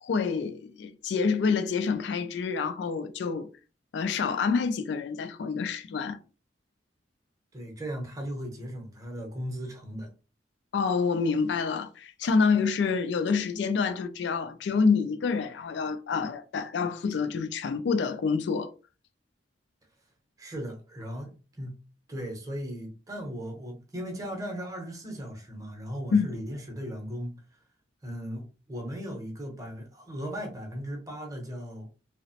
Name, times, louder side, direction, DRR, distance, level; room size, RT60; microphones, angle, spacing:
voice 1, 0.0-3.5 3.9-6.2 10.7-18.7 26.1-26.3, left 5 dB, 65° left, 0.3 m, -27 dB
voice 2, 7.5-10.1 20.4-21.8 22.1-27.6 28.0-31.9, equal, 20° right, 0.7 m, -37 dB
2.8 x 2.0 x 2.7 m
head